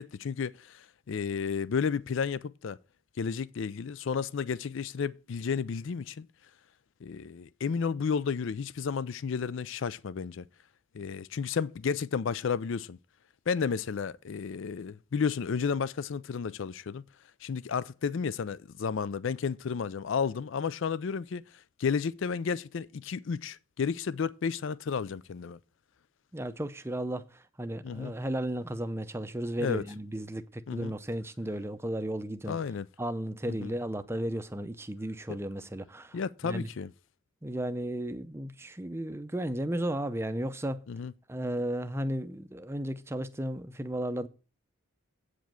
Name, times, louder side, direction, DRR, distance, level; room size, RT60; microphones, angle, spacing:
voice 1, 0.0-2.8 3.2-6.3 7.0-10.5 10.9-13.0 13.5-17.0 17.4-21.4 21.8-25.6 27.8-28.1 29.6-29.8 30.7-30.9 32.5-32.9 33.5-33.7 36.1-36.9 40.9-41.1, left 6 dB, 60° left, 0.4 m, -32 dB
voice 2, 26.3-32.6 33.0-36.7 37.4-40.8 41.3-44.3, right 1 dB, 10° right, 0.5 m, -34 dB
8.2 x 5.1 x 7.5 m
head